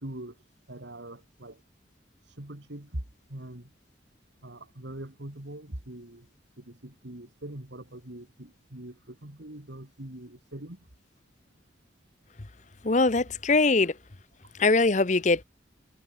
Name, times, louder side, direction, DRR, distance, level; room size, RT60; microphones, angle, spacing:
voice 1, 0.0-0.4 0.7-1.6 2.2-3.0 3.3-3.7 4.4-6.3 6.6-10.8 13.8-13.9 14.4-14.5, right 1 dB, 85° right, 2.7 m, -42 dB
voice 2, 12.8-13.9 14.6-15.4, left 3 dB, 40° left, 0.9 m, -22 dB
head